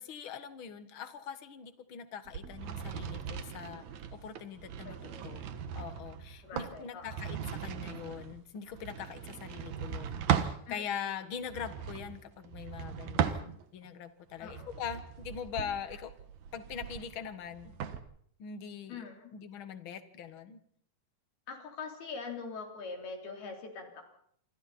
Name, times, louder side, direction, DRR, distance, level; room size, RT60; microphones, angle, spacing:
voice 1, 0.0-3.8 4.1-5.4 5.7-16.1 16.5-17.8 18.4-19.0 19.3-20.6, left 8 dB, 55° left, 10 dB, 1.5 m, -42 dB
sound 1, 2.3-10.6 11.4-13.9 14.4-18.0, right 9 dB, 60° right, 2.3 m, -37 dB
voice 2, 4.9-5.2 6.4-7.2 10.7-11.0 14.4-14.7 18.9-19.3 21.5-24.1, left 4 dB, 80° left, 2 dB, 5.7 m, -43 dB
28.0 x 25.5 x 4.3 m, 0.66 s
omnidirectional pair, 4.4 m